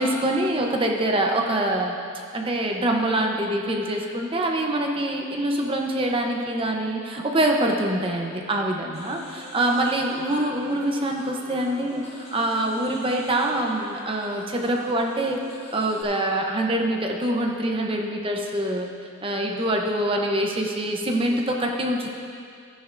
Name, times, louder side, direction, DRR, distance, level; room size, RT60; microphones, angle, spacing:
voice 1, 0.0-9.2 9.5-12.0 12.3-15.4 15.7-18.9 19.2-22.1, right 1 dB, 25° right, 1 dB, 0.8 m, -25 dB
sound 1, 8.9-16.0, left 2 dB, 25° left, 1.4 m, -43 dB
13.5 x 11.0 x 2.6 m, 2.3 s
head